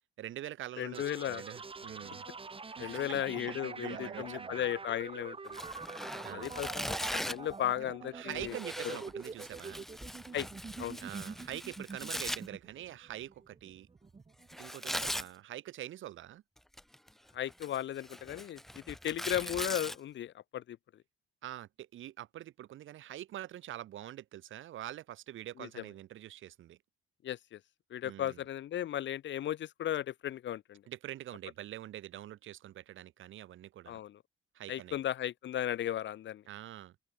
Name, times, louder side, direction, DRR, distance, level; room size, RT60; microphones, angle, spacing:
voice 1, 0.2-2.3 2.7-4.7 6.2-6.6 7.8-9.8 11.0-13.9 14.6-16.4 21.4-26.8 28.0-28.4 30.9-34.0 34.5-35.0 36.5-37.0, right 13 dB, 80° right, 4.2 m, -45 dB
voice 2, 0.8-1.4 2.8-5.6 6.3-8.5 10.3-10.5 10.8-11.0 17.3-20.8 25.6-25.7 27.2-27.6 27.9-30.8 33.9-34.2 34.7-36.4, left 11 dB, 70° left, 1.5 m, -36 dB
sound 1, 0.9-14.6, right 4 dB, 25° right, 2.0 m, -45 dB
Tearing, 5.5-7.5 8.4-12.4 14.5-15.3 16.6-17.1 17.5-20.0, equal, ahead, 0.5 m, -40 dB
open air
cardioid pair, 90°, 20 cm